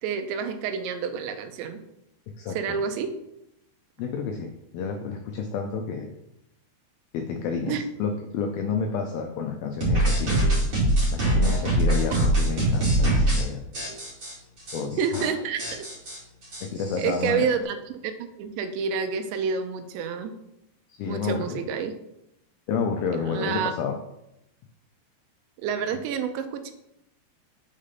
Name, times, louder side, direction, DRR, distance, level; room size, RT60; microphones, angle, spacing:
voice 1, 0.0-1.8 2.5-3.1 7.7-7.8 12.1-12.2 15.0-15.9 17.0-17.8 18.0-20.4 21.1-22.0 23.1-23.7 25.6-26.7, right 6 dB, 85° right, 8 dB, 3.0 m, -29 dB
voice 2, 2.4-2.8 4.0-6.1 7.1-10.4 11.1-13.6 14.7-15.3 16.6-17.5 20.9-21.7 22.7-24.0, left 6 dB, 85° left, 3 dB, 2.1 m, -30 dB
sound 1, 9.8-13.4 13.7-14.3 14.7-14.8 15.0-15.3 15.6-17.3, right 1 dB, 40° right, 2.7 m, -23 dB
6.3 x 5.1 x 5.7 m, 0.84 s
omnidirectional pair, 5.0 m